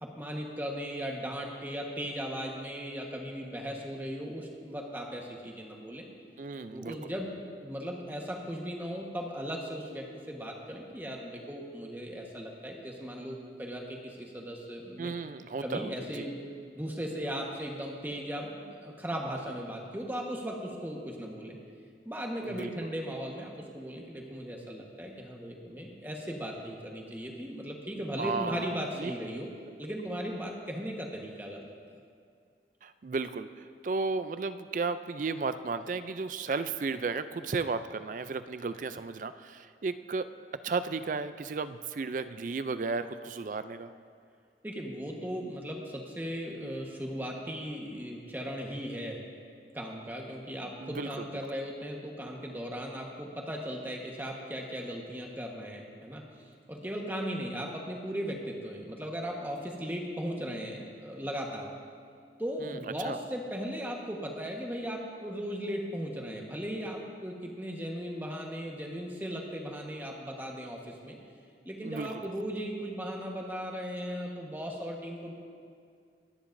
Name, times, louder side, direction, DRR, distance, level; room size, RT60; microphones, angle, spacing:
voice 1, 0.0-6.1 6.7-7.4 7.6-15.1 15.6-16.4 16.7-21.6 22.0-29.5 29.8-31.7 44.6-49.2 49.7-56.2 56.7-61.7 62.4-71.2 71.6-75.3, equal, 10° right, 0 dB, 1.3 m, -37 dB
voice 2, 6.4-7.0 15.0-16.2 22.4-22.9 28.2-29.1 32.8-40.3 40.6-43.9 50.8-51.4 62.6-63.2 71.8-72.3, right 4 dB, 45° right, 12 dB, 0.4 m, -34 dB
24.0 x 10.0 x 2.6 m, 2.3 s
head